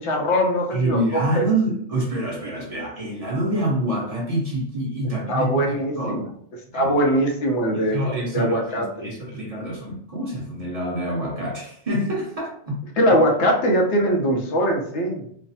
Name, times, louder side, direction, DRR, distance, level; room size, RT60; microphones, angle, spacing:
voice 1, 0.0-1.5 5.3-6.3 6.7-9.1 13.0-15.2, equal, 85° left, 1 dB, 1.0 m, -21 dB
voice 2, 0.7-6.2 6.7-6.9 7.9-12.8, right 1 dB, 35° right, -4 dB, 1.0 m, -26 dB
3.1 x 2.0 x 2.7 m, 0.65 s
omnidirectional pair, 1.2 m